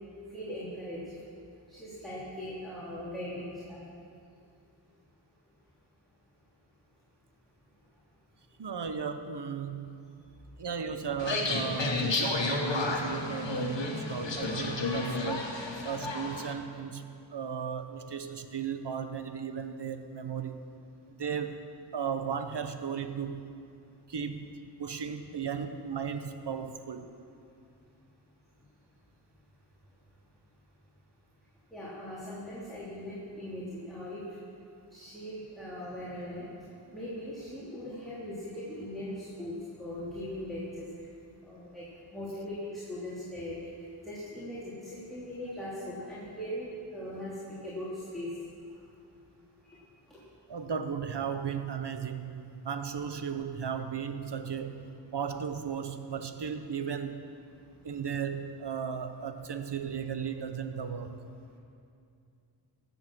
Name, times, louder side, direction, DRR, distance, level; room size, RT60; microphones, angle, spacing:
voice 1, 0.3-1.0 1.7-3.8 31.7-34.2 34.9-36.5 36.9-40.8 41.4-41.8 42.1-43.6 44.0-47.3 47.6-48.3 49.6-49.8, left 1 dB, ahead, -9 dB, 2.8 m, -40 dB
voice 2, 8.6-10.2 10.6-20.6 21.1-21.7 21.9-23.6 24.1-27.1 35.8-35.9 50.5-57.3 57.8-61.2, right 7 dB, 70° right, 9 dB, 0.8 m, -36 dB
sound 1, 11.2-16.5, left 3 dB, 85° left, 1.3 m, -31 dB
14.5 x 8.0 x 6.1 m, 2.5 s
wide cardioid pair, 50°, 43 cm